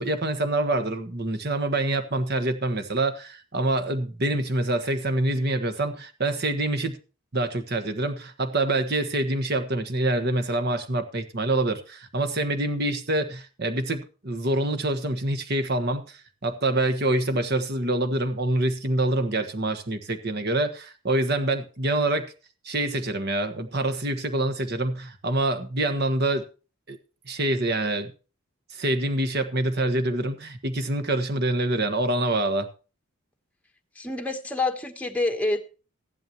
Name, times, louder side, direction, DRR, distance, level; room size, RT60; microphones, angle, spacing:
voice 1, 0.0-7.0 7.3-22.3 22.6-26.4 26.9-27.0 27.3-28.1 28.7-32.7, right 2 dB, 50° right, 1.4 m, -26 dB
voice 2, 34.0-35.6, left 2 dB, 5° left, 1.1 m, -27 dB
15.5 x 11.5 x 3.0 m
head